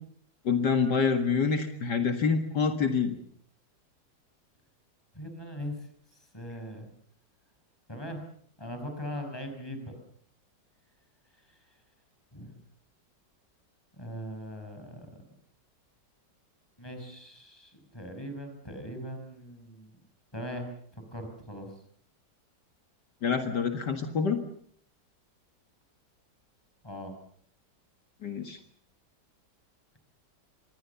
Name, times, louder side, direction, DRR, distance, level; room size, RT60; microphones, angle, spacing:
voice 1, 0.5-3.1 23.2-24.4 28.2-28.6, left 5 dB, 70° left, 6 dB, 2.4 m, -26 dB
voice 2, 5.1-5.8 6.3-6.9 7.9-8.2 8.6-9.9 12.3-12.5 14.0-15.1 16.8-20.0 20.3-20.7 21.1-21.7 26.8-27.1, equal, 15° left, 5 dB, 5.8 m, -40 dB
26.0 x 21.5 x 7.0 m, 0.62 s
omnidirectional pair, 1.9 m